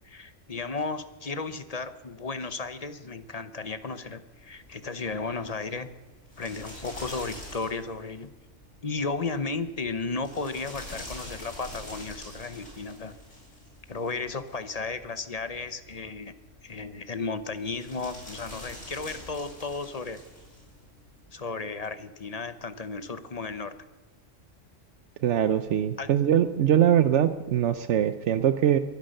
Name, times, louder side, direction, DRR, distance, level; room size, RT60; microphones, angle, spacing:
voice 1, 0.0-5.9 6.4-8.3 8.8-13.2 13.9-16.3 16.6-20.2 21.3-23.7 26.0-26.1, left 4 dB, 35° left, 12 dB, 0.8 m, -34 dB
sound 1, 4.3-21.2, left 1 dB, 65° left, 6.6 m, -46 dB
voice 2, 25.2-28.8, right 10 dB, 70° right, 12 dB, 1.0 m, -22 dB
22.5 x 9.8 x 6.6 m, 1.2 s
omnidirectional pair, 1.3 m